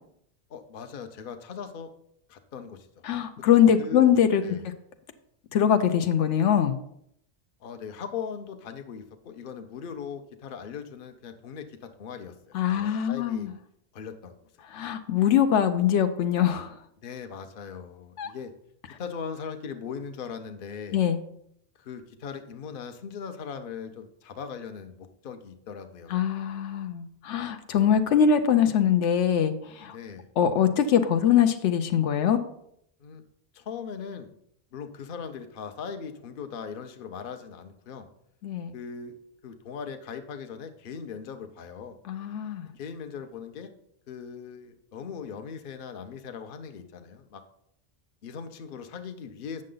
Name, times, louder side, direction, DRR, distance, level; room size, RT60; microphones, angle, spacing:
voice 1, 0.5-1.9 2.3-2.9 3.8-4.1 4.4-4.6 7.6-13.5 13.9-14.4 17.0-18.5 19.0-21.0 21.8-26.3 29.9-30.3 33.0-33.2 33.5-34.3 34.7-38.1 38.7-39.1 39.4-42.0 42.8-43.7 44.1-47.4 48.2-49.6, left 6 dB, 55° left, 7 dB, 0.8 m, -39 dB
voice 2, 3.0-4.7 5.5-6.8 12.5-13.5 14.7-16.8 18.2-18.3 20.9-21.2 26.1-30.0 30.4-32.4 38.4-38.7 42.1-42.7, left 8 dB, 85° left, 8 dB, 0.9 m, -23 dB
8.6 x 6.4 x 3.8 m, 0.73 s
omnidirectional pair, 1.2 m